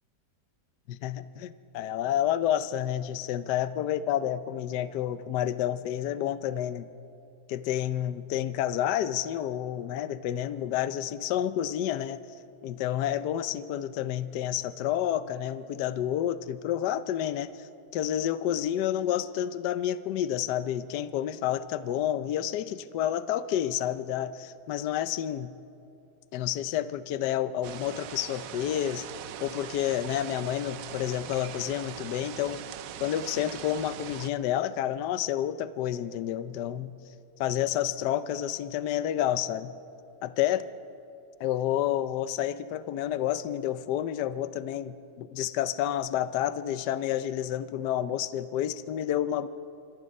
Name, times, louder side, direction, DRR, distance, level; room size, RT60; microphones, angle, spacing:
voice 1, 0.9-6.9 7.5-12.2 12.6-17.7 17.9-25.5 26.3-29.1 29.4-32.6 33.0-36.9 37.4-39.7 40.2-40.7 41.4-49.5, left 11 dB, 70° left, 13 dB, 1.2 m, -29 dB
sound 1, 27.6-34.3, right 10 dB, 65° right, 0.9 m, -41 dB
27.0 x 25.5 x 5.4 m, 2.8 s
omnidirectional pair, 2.1 m